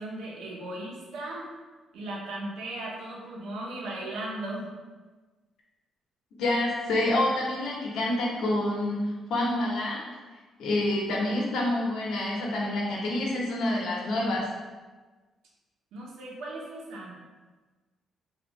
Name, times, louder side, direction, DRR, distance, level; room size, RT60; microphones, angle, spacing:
voice 1, 0.0-1.5 1.9-4.7 15.9-17.2, right 1 dB, 85° right, -3 dB, 0.8 m, -37 dB
voice 2, 6.4-10.0 10.6-14.5, left 1 dB, 80° left, -3 dB, 0.8 m, -27 dB
3.4 x 2.4 x 3.0 m, 1.3 s
cardioid pair, 150°, 0 cm